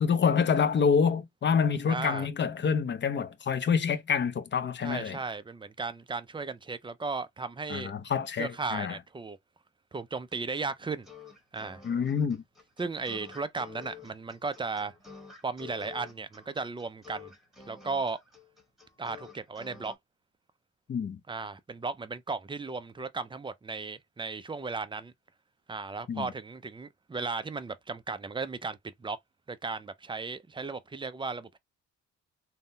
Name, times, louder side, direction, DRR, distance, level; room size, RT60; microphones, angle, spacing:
voice 1, 0.0-5.2 7.7-9.0 11.8-12.4 20.9-21.2 26.1-26.3, left 6 dB, 40° left, 0.7 m, -27 dB
voice 2, 1.9-2.3 4.8-7.9 8.4-9.4 9.9-11.1 11.5-11.8 12.8-14.9 15.4-17.3 17.7-18.2 19.0-19.9 21.3-25.1 25.7-29.2 29.5-31.6, right 4 dB, 15° right, 0.4 m, -35 dB
sound 1, 10.3-20.0, left 6 dB, ahead, 1.2 m, -49 dB
3.6 x 2.1 x 2.6 m
cardioid pair, 90°, 30 cm